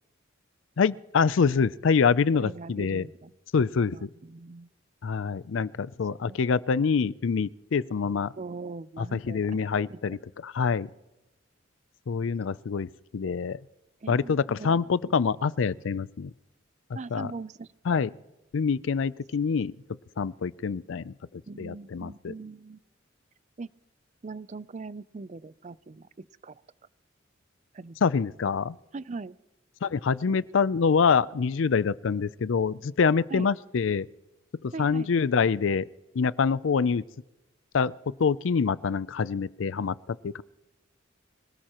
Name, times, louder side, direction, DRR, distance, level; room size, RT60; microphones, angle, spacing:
voice 1, 0.8-3.1 3.5-4.1 5.0-8.3 9.0-10.9 12.1-13.6 14.1-16.3 17.1-17.3 17.9-18.1 18.5-19.7 20.2-21.1 21.6-22.3 28.0-28.8 29.8-34.1 34.6-35.9 36.1-37.0 37.7-40.4, left 5 dB, 75° left, 18 dB, 0.4 m, -26 dB
voice 2, 2.4-3.3 3.9-4.7 6.3-6.4 8.3-9.6 9.9-10.0 14.0-14.8 16.9-17.7 21.5-22.8 23.6-23.7 24.2-26.6 27.7-28.0 28.9-29.4 30.3-30.4 33.3-33.5 34.7-35.1, right 3 dB, 35° right, 17 dB, 0.4 m, -40 dB
25.5 x 18.0 x 3.0 m, 1.0 s
head